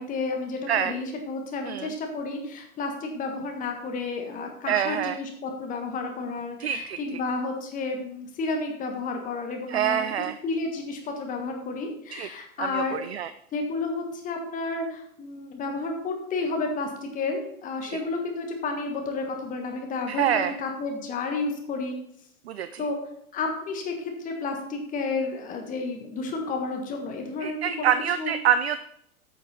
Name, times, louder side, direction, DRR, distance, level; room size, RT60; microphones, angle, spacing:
voice 1, 0.0-10.0 10.4-13.0 13.5-22.0 22.8-23.0 23.3-28.3, left 3 dB, 20° left, 3 dB, 1.5 m, -31 dB
voice 2, 4.7-5.2 6.6-7.2 9.7-10.4 12.1-12.3 12.6-13.3 17.8-18.0 20.1-20.5 22.5-22.8 27.4-28.8, right 9 dB, 50° right, 12 dB, 0.5 m, -26 dB
8.7 x 7.4 x 4.1 m, 0.74 s
figure-of-eight pair, 100°, 43 cm